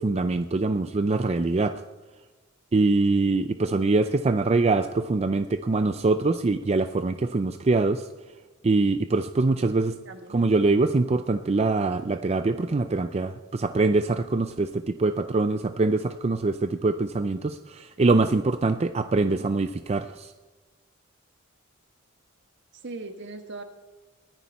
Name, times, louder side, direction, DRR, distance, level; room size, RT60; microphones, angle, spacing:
voice 1, 0.0-1.7 2.7-8.1 8.6-9.9 10.3-20.3, right 3 dB, 30° right, 10 dB, 0.4 m, -24 dB
voice 2, 3.7-4.2 10.0-10.4 22.7-23.6, right 3 dB, 60° right, 7 dB, 1.4 m, -40 dB
22.0 x 10.0 x 4.2 m, 1.2 s
head